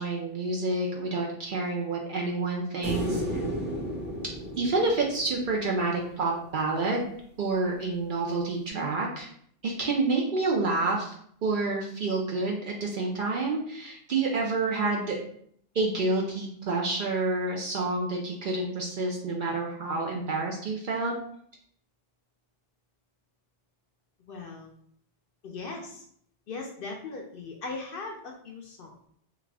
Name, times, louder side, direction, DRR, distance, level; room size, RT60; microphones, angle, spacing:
voice 1, 0.0-3.4 4.6-7.1 7.4-9.3 9.6-11.1 11.4-15.2 15.7-21.1, right 3 dB, 55° right, -1 dB, 0.6 m, -28 dB
sound 1, 2.8-6.1 8.7-8.8, equal, 10° right, 0.7 m, -33 dB
voice 2, 24.3-24.7 25.4-26.1 26.5-29.1, left 3 dB, 60° left, 1 dB, 0.7 m, -39 dB
3.3 x 2.4 x 3.3 m, 0.65 s
omnidirectional pair, 1.2 m